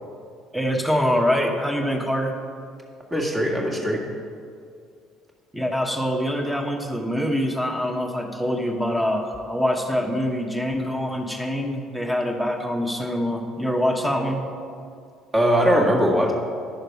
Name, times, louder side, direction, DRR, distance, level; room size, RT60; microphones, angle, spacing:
voice 1, 0.5-2.3 5.5-14.4, equal, 5° right, 3 dB, 1.3 m, -24 dB
voice 2, 3.1-4.0 15.3-16.3, equal, 20° right, -1 dB, 1.9 m, -20 dB
10.5 x 6.5 x 4.6 m, 2.3 s
figure-of-eight pair, 55°, 0 cm